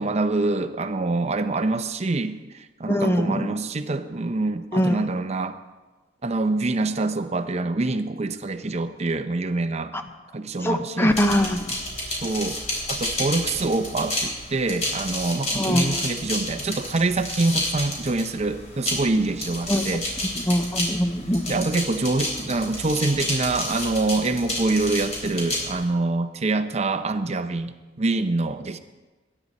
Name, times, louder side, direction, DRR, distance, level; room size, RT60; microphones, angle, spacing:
voice 1, 0.0-5.6 6.2-9.9 10.3-11.2 12.1-20.0 21.5-28.8, right 2 dB, 35° right, 10 dB, 0.7 m, -25 dB
voice 2, 2.9-3.5 4.7-5.0 9.9-10.0 10.6-11.7 15.5-16.0 19.7-19.8 20.4-21.6, equal, 15° left, 6 dB, 0.9 m, -22 dB
sound 1, 11.1-25.8, left 1 dB, 35° left, 4.0 m, -30 dB
21.5 x 10.0 x 4.2 m, 1.2 s
head